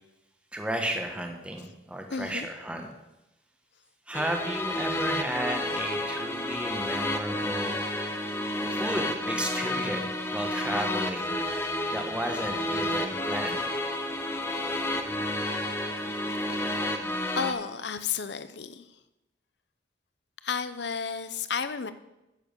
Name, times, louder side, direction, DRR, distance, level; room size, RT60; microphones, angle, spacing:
voice 1, 0.5-2.9 4.1-7.8 8.7-11.3 11.9-13.6, right 1 dB, 5° right, 3 dB, 1.1 m, -33 dB
voice 2, 2.1-2.5 11.9-12.0 13.5-13.6 16.5-18.9 20.4-21.9, left 6 dB, 70° left, 12 dB, 0.7 m, -33 dB
sound 1, 4.1-17.5, left 1 dB, 15° left, 0.8 m, -30 dB
10.5 x 6.9 x 6.7 m, 0.94 s
head